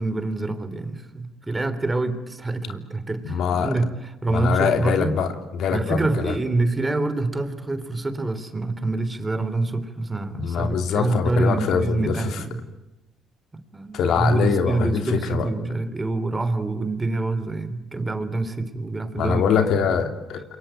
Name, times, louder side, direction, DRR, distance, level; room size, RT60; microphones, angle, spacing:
voice 1, 0.0-5.2 5.7-12.6 13.7-19.5, right 2 dB, 20° right, 11 dB, 3.5 m, -26 dB
voice 2, 3.2-3.7 4.3-6.4 10.4-12.4 13.9-15.5 19.2-20.4, left 6 dB, 70° left, 7 dB, 3.0 m, -23 dB
27.5 x 23.5 x 9.2 m, 0.98 s
supercardioid pair, 75°, 0 cm